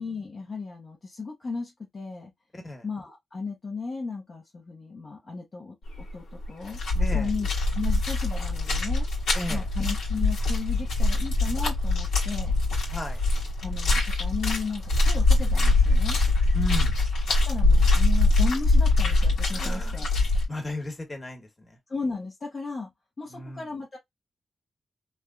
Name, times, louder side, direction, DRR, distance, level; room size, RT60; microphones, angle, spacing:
voice 1, 0.0-2.3 2.8-7.5 7.7-9.1 9.5-12.5 13.6-16.2 17.5-20.1 21.9-22.9 23.2-24.0, left 4 dB, 50° left, 0.8 m, -35 dB
voice 2, 2.5-2.8 7.0-7.3 9.3-9.6 12.9-13.2 16.5-16.9 19.5-20.0 20.5-21.8 23.3-23.7, left 1 dB, 30° left, 1.4 m, -35 dB
sound 1, 5.9-6.1 6.4-20.5, left 2 dB, 90° left, 1.4 m, -23 dB
3.3 x 2.3 x 2.4 m
cardioid pair, 60°, 0 cm